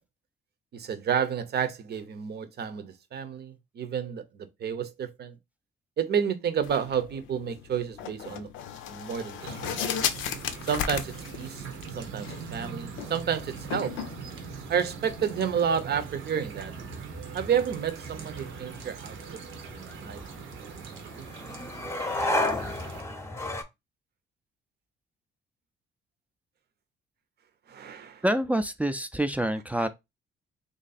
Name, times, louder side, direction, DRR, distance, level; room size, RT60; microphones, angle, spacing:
voice 1, 0.7-5.4 6.0-8.5 8.9-9.8 10.6-11.6 11.9-14.0 14.7-16.7 17.3-20.2 20.6-20.9 27.7-28.2 29.8-29.9, right 7 dB, 55° right, 0.7 m, -30 dB
sound 1, 6.6-15.4, left 8 dB, 85° left, 0.6 m, -36 dB
sound 2, 9.4-23.0, right 6 dB, 85° right, 0.9 m, -42 dB
sound 3, 14.1-23.6, left 1 dB, 15° left, 0.8 m, -35 dB
voice 2, 28.2-29.9, right 1 dB, 5° right, 0.4 m, -26 dB
3.1 x 2.7 x 4.0 m
cardioid pair, 90°, 20 cm